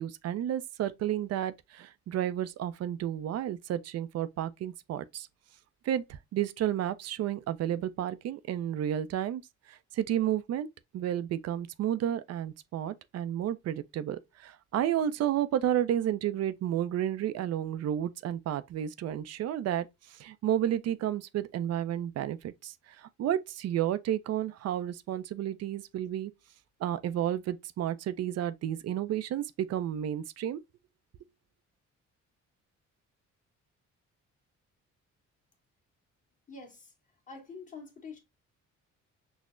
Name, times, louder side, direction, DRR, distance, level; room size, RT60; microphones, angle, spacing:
voice 1, 0.0-5.3 5.8-9.4 9.7-10.7 10.9-26.3 26.8-30.6, right 11 dB, 55° right, 0.4 m, -31 dB
voice 2, 36.5-36.9 37.3-38.2, left 4 dB, 25° left, 1.5 m, -46 dB
6.0 x 2.0 x 2.4 m
cardioid pair, 90°, 30 cm